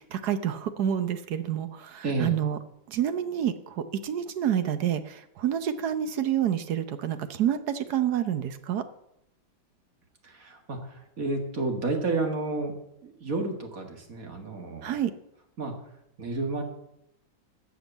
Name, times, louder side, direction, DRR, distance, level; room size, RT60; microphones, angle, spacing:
voice 1, 0.0-2.6 2.9-8.8 14.8-15.1, right 10 dB, 60° right, 11 dB, 1.3 m, -28 dB
voice 2, 2.0-2.3 10.2-12.7 13.0-15.0 15.6-15.8 16.2-16.6, right 3 dB, 45° right, 4 dB, 2.1 m, -31 dB
13.5 x 6.4 x 8.3 m, 0.79 s
omnidirectional pair, 2.1 m